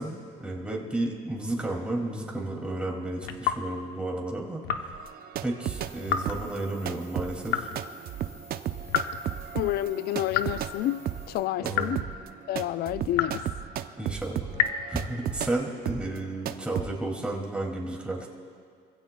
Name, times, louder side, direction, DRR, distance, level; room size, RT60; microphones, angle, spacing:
voice 1, 0.0-4.9 5.4-7.7 11.6-12.0 14.0-14.5 14.9-18.3, right 2 dB, 5° right, 2.4 m, -32 dB
sound 1, 3.2-3.7 4.6-5.0 6.0-6.4 7.5-7.9 8.9-9.3 10.3-10.6 11.7-12.1 13.1-13.5 14.5-14.9, left 9 dB, 85° left, 0.9 m, -29 dB
sound 2, 4.9-6.0 6.2-15.6 15.8-16.2 16.4-16.9, right 11 dB, 60° right, 0.6 m, -34 dB
sound 3, 5.6-11.4, right 2 dB, 40° left, 4.2 m, -51 dB
voice 2, 9.5-12.0 12.5-13.5, left 14 dB, 70° left, 0.4 m, -29 dB
25.5 x 16.0 x 2.3 m
cardioid pair, 110°, 17 cm